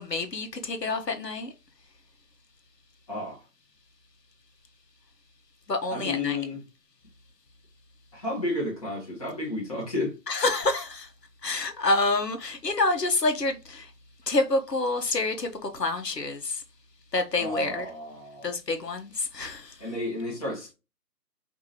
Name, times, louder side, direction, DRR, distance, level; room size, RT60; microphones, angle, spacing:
voice 1, 0.0-1.5 5.7-6.4 10.3-11.1 11.4-13.9 14.3-16.6 17.1-17.9 18.4-19.8, left 2 dB, 75° left, 1.0 m, -27 dB
voice 2, 3.1-3.4 5.9-6.6 8.1-10.1 17.4-18.5 19.8-20.7, left 2 dB, 20° left, 1.1 m, -32 dB
4.8 x 2.6 x 2.8 m
figure-of-eight pair, 155°, 50 cm